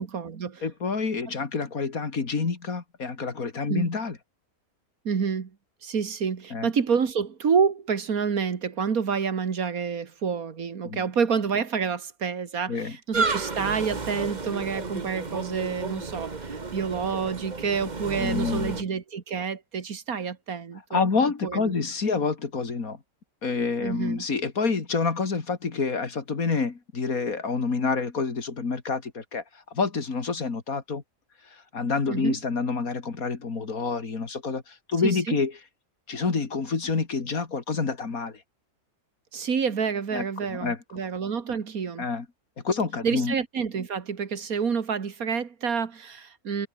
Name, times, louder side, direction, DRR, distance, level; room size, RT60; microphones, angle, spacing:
voice 1, 0.0-0.7 3.7-3.9 5.1-5.5 5.8-21.1 21.4-21.7 23.8-24.3 32.1-32.4 35.0-35.4 39.3-42.1 43.0-46.7, right 6 dB, 75° right, 2.2 m, -28 dB
voice 2, 0.6-4.2 6.5-6.7 10.8-11.0 12.7-12.9 18.2-18.8 20.9-23.0 23.4-29.4 29.7-31.0 31.7-34.6 34.9-35.5 36.1-38.3 40.1-40.2 40.5-40.8 42.0-42.2 42.6-43.3, left 4 dB, 75° left, 3.0 m, -27 dB
sound 1, 13.1-18.8, right 4 dB, 30° right, 1.6 m, -32 dB
omnidirectional pair, 1.5 m